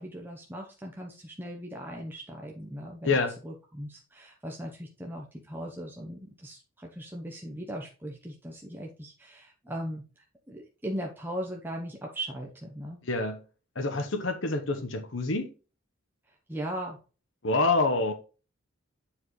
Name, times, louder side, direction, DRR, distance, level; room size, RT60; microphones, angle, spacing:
voice 1, 0.0-3.2 3.4-13.0 16.3-17.0, right 1 dB, 10° right, 0.9 m, -39 dB
voice 2, 3.0-3.4 13.0-13.4 13.7-15.5 17.4-18.1, left 3 dB, 65° left, 1.1 m, -27 dB
8.5 x 5.0 x 3.2 m
head